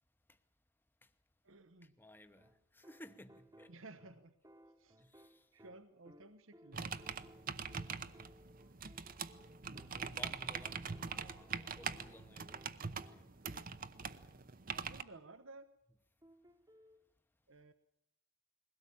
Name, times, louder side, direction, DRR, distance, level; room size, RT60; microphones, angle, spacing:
voice 1, 1.4-1.9 3.7-4.3 4.8-5.0 5.5-7.1 14.7-15.7 17.5-17.7, right 2 dB, 75° right, 1.0 m, -56 dB
voice 2, 2.0-3.7 5.0-5.5 9.9-13.5, left 1 dB, 10° left, 1.0 m, -57 dB
sound 1, 2.4-14.0 16.2-17.0, equal, 15° right, 1.2 m, -63 dB
sound 2, 6.7-15.0, right 6 dB, 45° right, 0.8 m, -43 dB
21.5 x 17.5 x 8.6 m
head